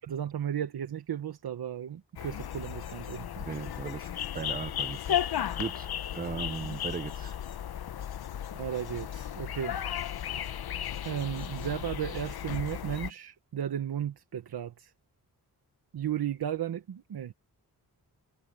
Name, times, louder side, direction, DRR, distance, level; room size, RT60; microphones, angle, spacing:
voice 1, 0.0-3.5 8.5-9.8 11.0-14.9 15.9-17.3, right 9 dB, 75° right, 1.2 m, -34 dB
sound 1, 2.2-13.1, left 10 dB, 75° left, 0.8 m, -35 dB
voice 2, 3.5-5.2 5.6-5.9 6.1-7.4, right 5 dB, 25° right, 0.4 m, -37 dB
wide cardioid pair, 145°, 38 cm